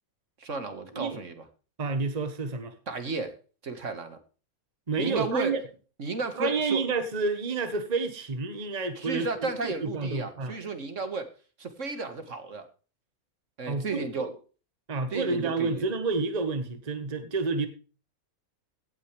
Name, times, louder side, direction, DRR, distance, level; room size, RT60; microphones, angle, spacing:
voice 1, 0.4-1.5 2.9-3.3 3.6-4.2 5.0-5.5 6.0-6.8 9.0-11.3 11.6-12.7 13.6-14.3 15.1-15.8, right 3 dB, 60° right, 8 dB, 1.9 m, -33 dB
voice 2, 1.8-2.7 4.9-5.6 6.4-10.5 13.7-14.0 14.9-17.7, right 4 dB, 30° right, 9 dB, 1.4 m, -29 dB
17.0 x 9.3 x 3.3 m, 0.36 s
omnidirectional pair, 1.5 m